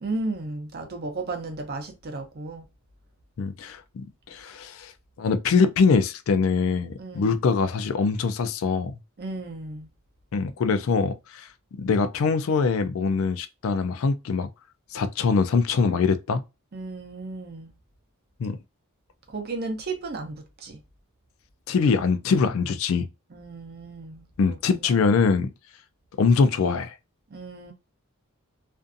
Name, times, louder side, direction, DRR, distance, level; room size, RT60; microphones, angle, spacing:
voice 1, 0.0-2.7 7.0-7.4 9.2-9.9 16.7-17.7 19.3-20.8 23.3-25.1 27.3-27.7, right 3 dB, 45° right, 0.6 m, -34 dB
voice 2, 3.4-4.9 5.2-9.0 10.3-11.5 11.8-14.5 14.9-16.4 18.4-18.6 21.7-23.1 24.4-25.5 26.2-26.9, left 5 dB, 65° left, 0.3 m, -23 dB
2.5 x 2.4 x 2.5 m
head